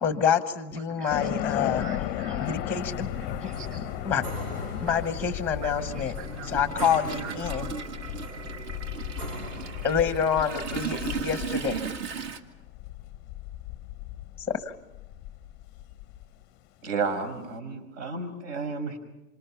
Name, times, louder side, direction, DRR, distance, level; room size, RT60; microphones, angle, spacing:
voice 1, 0.0-1.8 2.4-3.1 3.4-3.5 4.1-4.2 4.8-6.1 6.5-7.7 9.8-11.8 14.4-14.6, left 7 dB, 5° left, 10 dB, 1.0 m, -27 dB
voice 2, 0.7-2.5 3.4-3.7 4.8-5.0 5.6-6.6 7.2-8.3 10.7-10.8, right 7 dB, 25° right, 0 dB, 3.3 m, -45 dB
sound 1, 1.1-16.2, left 12 dB, 25° left, 0.8 m, -35 dB
Toilet flush, 1.9-2.0 3.3-3.4 3.8-12.4, right 6 dB, 45° right, 2.0 m, -37 dB
sound 2, 2.7-11.6, right 2 dB, 80° right, 7.5 m, -41 dB
voice 3, 16.8-19.0, right 4 dB, 60° right, 7 dB, 5.8 m, -31 dB
27.5 x 26.0 x 5.7 m, 0.98 s
hypercardioid pair, 150°, 44 cm